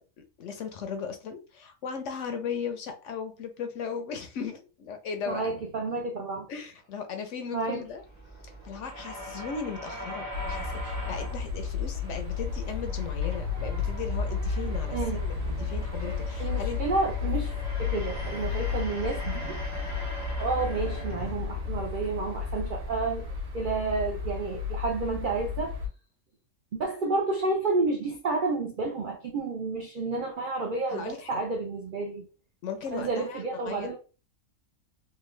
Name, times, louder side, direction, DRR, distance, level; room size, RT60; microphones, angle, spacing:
voice 1, 0.4-5.5 6.5-8.0 8.6-16.8 30.9-31.4 32.6-33.9, left 6 dB, 65° left, 0.8 m, -37 dB
voice 2, 5.3-6.5 7.5-7.8 14.9-15.2 16.4-17.5 17.8-19.6 20.4-23.3 23.5-25.8 26.7-32.3 32.9-34.0, right 3 dB, 70° right, 0.4 m, -30 dB
sound 1, 7.8-24.2, equal, 15° right, 0.6 m, -42 dB
sound 2, 10.3-25.9, left 5 dB, 90° right, 1.6 m, -32 dB
3.7 x 2.2 x 3.1 m
omnidirectional pair, 1.5 m